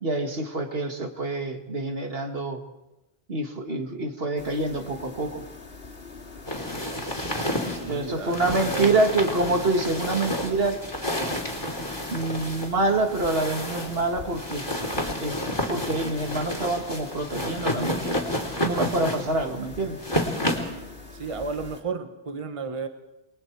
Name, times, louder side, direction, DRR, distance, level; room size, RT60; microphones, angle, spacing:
voice 1, 0.0-2.6 3.3-5.4 7.9-10.8 12.1-14.7 15.2-15.4 15.7-18.2 18.6-20.0, right 2 dB, 65° right, 4 dB, 2.2 m, -26 dB
Dining Room Room Tone, 4.4-21.8, left 3 dB, 65° left, 2.4 m, -44 dB
sound 1, 6.5-20.8, left 1 dB, 20° left, 3.4 m, -30 dB
voice 2, 7.7-9.1 21.1-22.9, right 4 dB, 30° right, 6 dB, 1.1 m, -33 dB
28.0 x 22.0 x 4.6 m, 1.0 s
omnidirectional pair, 1.1 m